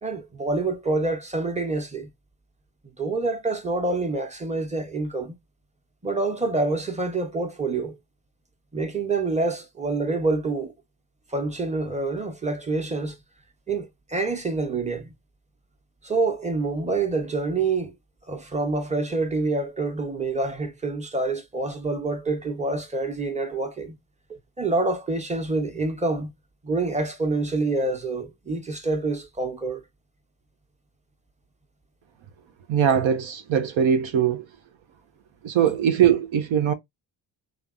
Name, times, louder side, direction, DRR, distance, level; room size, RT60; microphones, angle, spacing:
voice 1, 0.0-2.1 3.0-5.3 6.0-8.0 8.7-10.7 11.3-13.2 13.7-15.1 16.0-17.9 18.3-24.0 24.3-26.3 26.6-29.8, right 3 dB, 15° right, 1.0 m, -27 dB
voice 2, 32.7-34.4 35.4-36.7, right 8 dB, 70° right, 0.6 m, -21 dB
3.2 x 2.1 x 2.5 m
supercardioid pair, 45°, 50 cm